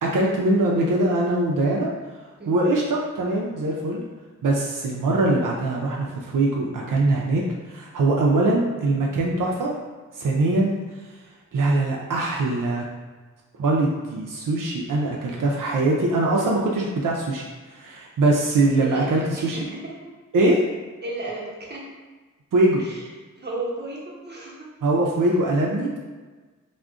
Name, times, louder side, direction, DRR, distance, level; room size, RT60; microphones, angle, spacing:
voice 1, 0.0-1.9 2.5-4.0 4.4-9.8 10.1-10.8 11.5-12.8 13.6-17.4 17.7-19.6 20.3-20.7 22.5-22.8 24.8-26.0, right 2 dB, 85° right, -2 dB, 0.5 m, -22 dB
voice 2, 18.8-20.1 21.0-21.9 22.8-23.0 23.4-24.7, right 2 dB, 35° right, -5 dB, 0.8 m, -34 dB
2.4 x 2.1 x 3.5 m, 1.3 s
wide cardioid pair, 65°, 31 cm